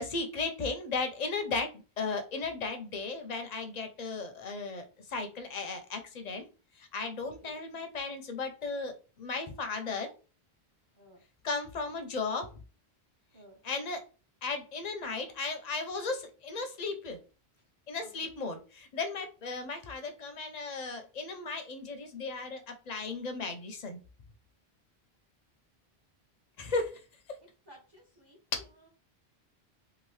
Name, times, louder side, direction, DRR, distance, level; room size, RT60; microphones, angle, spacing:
voice 1, 0.0-1.7 2.0-6.4 6.8-10.1 11.4-12.5 13.6-14.0 14.4-17.2 17.9-24.0 26.6-27.0, left 3 dB, 50° left, 6 dB, 0.5 m, -35 dB
voice 2, 7.2-7.6 11.0-11.2 13.3-13.6 18.0-18.1 27.7-28.4, right 1 dB, 25° right, -3 dB, 0.7 m, -56 dB
2.9 x 2.4 x 3.1 m, 0.34 s
omnidirectional pair, 1.1 m